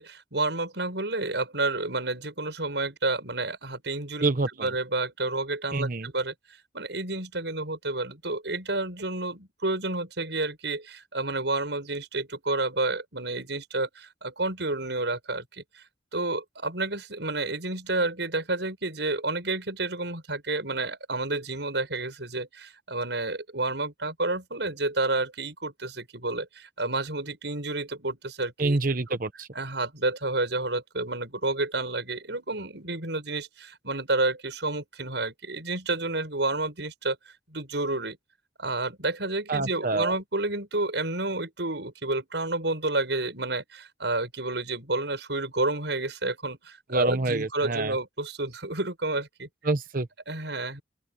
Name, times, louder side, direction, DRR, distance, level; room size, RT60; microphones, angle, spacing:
voice 1, 0.0-4.3 4.6-6.3 6.7-15.8 16.1-28.8 29.1-29.2 29.5-37.2 37.5-38.2 38.6-49.5 50.3-50.8, right 2 dB, 75° right, 6.5 m, -30 dB
voice 2, 4.2-4.7 5.7-6.1 28.6-29.5 39.5-40.1 46.9-48.0 49.6-50.1, right 3 dB, 50° right, 1.0 m, -26 dB
open air
head